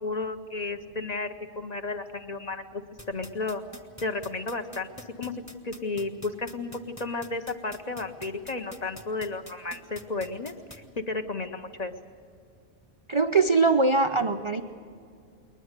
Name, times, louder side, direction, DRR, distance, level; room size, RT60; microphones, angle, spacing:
voice 1, 0.0-3.6 4.0-5.3 5.6-6.7 7.0-11.9, left 3 dB, 40° left, 7 dB, 0.9 m, -33 dB
sound 1, 3.0-10.8, equal, 15° left, 1.4 m, -44 dB
voice 2, 13.1-14.6, right 3 dB, 40° right, 7 dB, 0.4 m, -22 dB
21.0 x 20.5 x 8.2 m, 2.3 s
omnidirectional pair, 1.2 m